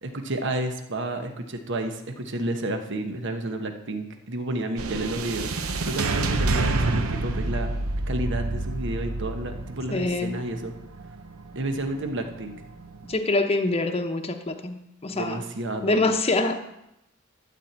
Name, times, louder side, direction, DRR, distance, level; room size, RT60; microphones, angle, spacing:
voice 1, 0.0-7.7 8.1-10.7 11.5-12.5 15.1-16.0, right 1 dB, 60° right, 6 dB, 1.2 m, -31 dB
sound 1, 4.8-13.2, right 2 dB, 85° right, 0.8 m, -29 dB
voice 2, 9.9-10.4 13.1-15.4 15.8-16.5, left 2 dB, 30° left, 5 dB, 0.9 m, -25 dB
12.5 x 4.4 x 8.2 m, 0.84 s
head